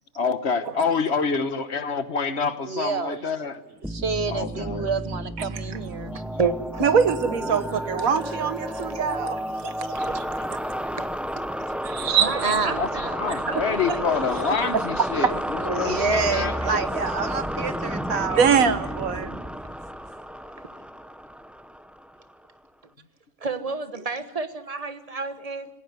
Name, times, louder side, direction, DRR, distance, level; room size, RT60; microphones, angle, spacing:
voice 1, 0.1-3.6 4.3-4.9 12.8-16.8, left 5 dB, 55° left, 11 dB, 1.3 m, -27 dB
voice 2, 2.6-3.2 3.8-6.2 6.8-7.0 7.5-7.8 12.4-13.1 15.8-18.6, right 5 dB, 55° right, 12 dB, 1.1 m, -28 dB
sound 1, 3.8-22.3, equal, ahead, 0.4 m, -31 dB
voice 3, 6.1-6.9 8.7-8.9 11.0-11.1 11.4-11.5 12.2-12.8 13.5-14.0 23.4-25.7, right 4 dB, 30° right, 10 dB, 1.3 m, -30 dB
voice 4, 6.8-10.2 11.8-12.6 14.7-14.8 15.7-15.8 18.4-19.4, right 6 dB, 80° right, 12 dB, 1.6 m, -23 dB
19.5 x 17.5 x 9.4 m, 1.0 s
omnidirectional pair, 1.4 m